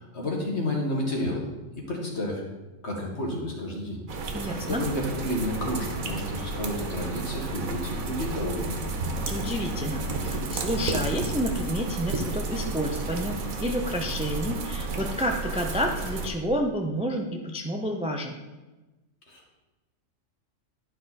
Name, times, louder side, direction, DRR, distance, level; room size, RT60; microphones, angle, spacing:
voice 1, 0.0-1.4 1.8-2.4 2.8-4.0 4.7-8.8 19.3-19.6, left 1 dB, 55° left, -1 dB, 2.0 m, -31 dB
sound 1, 4.1-16.3, right 3 dB, 85° right, 1.4 m, -32 dB
voice 2, 4.3-4.8 9.3-18.4, equal, 10° right, 3 dB, 0.4 m, -30 dB
11.0 x 5.5 x 4.2 m, 1.1 s
omnidirectional pair, 1.4 m